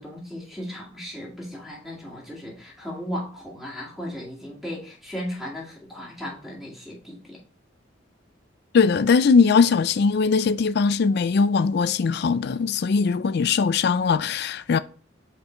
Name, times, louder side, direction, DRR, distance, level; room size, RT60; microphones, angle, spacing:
voice 1, 0.0-7.4, equal, ahead, 2.2 m, -36 dB
voice 2, 8.7-14.8, left 5 dB, 60° left, 0.4 m, -20 dB
5.5 x 4.6 x 3.8 m
head